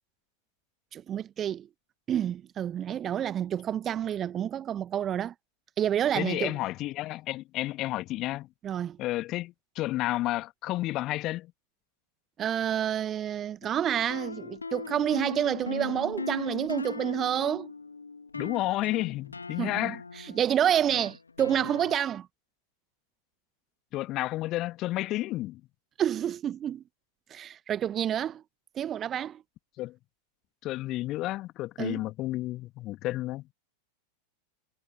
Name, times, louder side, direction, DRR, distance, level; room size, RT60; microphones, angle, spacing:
voice 1, 0.9-1.7 2.1-5.3 5.8-6.6 8.6-9.0 12.4-17.7 19.6-22.3 26.0-26.8 27.3-28.4 28.7-29.4 31.8-32.0, right 10 dB, 25° right, 1.5 m, -29 dB
voice 2, 6.2-8.5 9.0-11.5 18.3-20.0 23.9-25.6 29.8-29.9 30.6-33.5, left 17 dB, 35° left, 1.9 m, -31 dB
sound 1, 13.6-22.0, left 4 dB, 80° left, 2.5 m, -39 dB
figure-of-eight pair, 90°, 0 cm